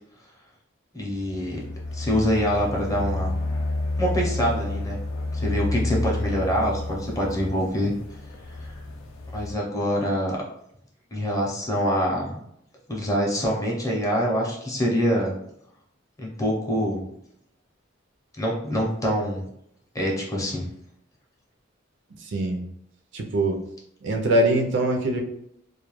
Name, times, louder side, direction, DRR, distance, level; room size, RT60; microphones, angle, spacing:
voice 1, 0.9-1.6 1.9-3.4 4.0-5.0 5.3-7.9 8.6-8.7 9.3-10.4 11.1-12.4 12.9-15.3 16.2-17.0 18.4-19.4 19.9-20.7, equal, 15° left, -2 dB, 0.6 m, -25 dB
sound 1, 1.2-9.5, left 2 dB, 85° left, 0.4 m, -30 dB
voice 2, 22.2-22.6 23.1-23.6 24.0-25.2, right 1 dB, 65° right, 2 dB, 0.5 m, -23 dB
2.2 x 2.1 x 3.0 m, 0.74 s
head